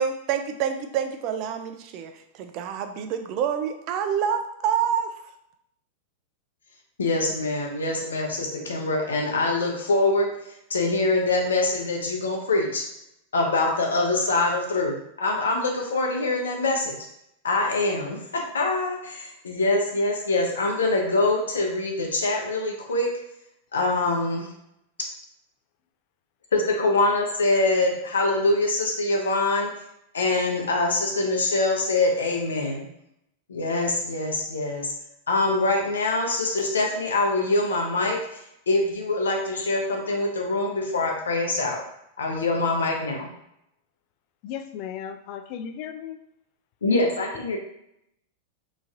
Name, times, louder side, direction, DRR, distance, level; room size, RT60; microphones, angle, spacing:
voice 1, 0.0-5.1, right 8 dB, 50° right, 7 dB, 0.4 m, -27 dB
voice 2, 7.0-10.3 10.7-12.8 13.3-17.0 17.4-18.2 18.5-23.1 23.7-24.5 26.5-29.7 30.1-32.9 33.5-34.9 35.3-38.4 38.7-41.8 42.2-43.3 46.8-47.6, left 2 dB, 90° left, 1 dB, 0.6 m, -24 dB
voice 3, 44.4-46.2, left 8 dB, 55° left, 9 dB, 0.3 m, -36 dB
3.0 x 2.5 x 2.4 m, 0.79 s
hypercardioid pair, 105°, 0 cm